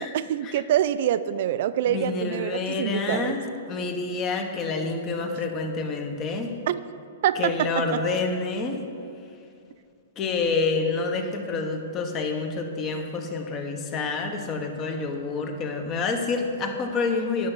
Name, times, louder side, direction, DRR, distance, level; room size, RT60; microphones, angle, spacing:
voice 1, 0.0-3.4 6.7-6.8 7.2-8.0, right 11 dB, 55° right, 14 dB, 0.4 m, -25 dB
voice 2, 1.9-6.6 7.4-8.8 10.2-17.5, left 4 dB, 25° left, 5 dB, 1.0 m, -28 dB
10.5 x 6.6 x 6.1 m, 2.5 s
hypercardioid pair, 150°, 0 cm